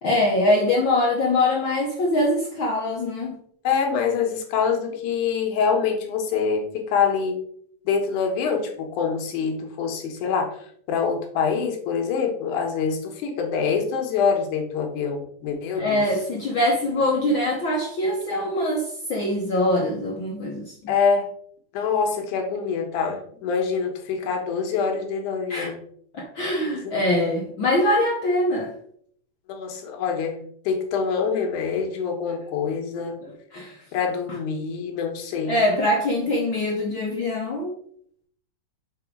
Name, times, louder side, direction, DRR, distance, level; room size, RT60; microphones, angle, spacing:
voice 1, 0.0-3.3 15.8-20.9 25.5-25.7 26.1-28.7 32.9-33.8 35.5-37.8, left 1 dB, 70° left, -1 dB, 1.1 m, -23 dB
voice 2, 3.6-7.4 7.9-10.6 10.9-16.0 20.9-21.3 21.7-25.8 26.7-26.9 29.5-33.2 33.9-35.6, left 6 dB, 85° left, 3 dB, 2.6 m, -25 dB
6.8 x 3.9 x 4.7 m, 0.64 s
omnidirectional pair, 3.5 m